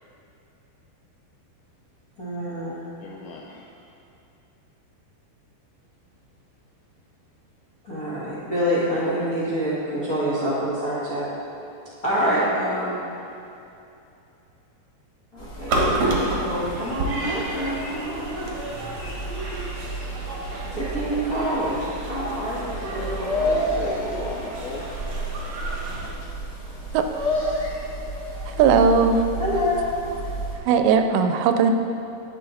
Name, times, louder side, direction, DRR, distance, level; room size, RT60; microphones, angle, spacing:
voice 1, 2.2-2.8 7.8-11.3 12.0-13.0 15.3-18.5 20.7-24.4 29.4-30.1, equal, 55° left, -9 dB, 1.0 m, -27 dB
voice 2, 3.0-3.8 12.5-13.1 23.9-25.0 25.7-25.9, left 4 dB, 80° left, -2 dB, 2.2 m, -41 dB
sound 1, 15.4-30.5, equal, 35° left, 1.8 m, -31 dB
sound 2, 15.7-26.1, right 2 dB, 60° right, 1.7 m, -31 dB
voice 3, 28.6-29.2 30.7-31.7, right 6 dB, 85° right, 7 dB, 2.7 m, -18 dB
11.5 x 9.1 x 4.1 m, 2.7 s
omnidirectional pair, 5.1 m